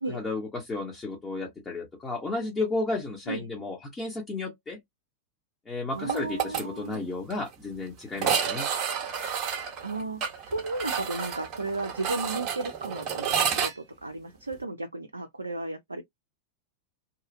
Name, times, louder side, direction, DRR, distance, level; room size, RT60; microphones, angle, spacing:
voice 1, 0.1-4.8 5.7-8.7, left 3 dB, 15° left, 1.0 m, -33 dB
voice 2, 5.9-7.0 9.8-16.0, right 2 dB, 80° right, 0.4 m, -34 dB
sound 1, 6.1-6.6 6.9-7.0 7.3-7.4 8.1-13.7, right 7 dB, 35° right, 0.9 m, -30 dB
2.8 x 2.4 x 2.5 m
figure-of-eight pair, 90°, 0 cm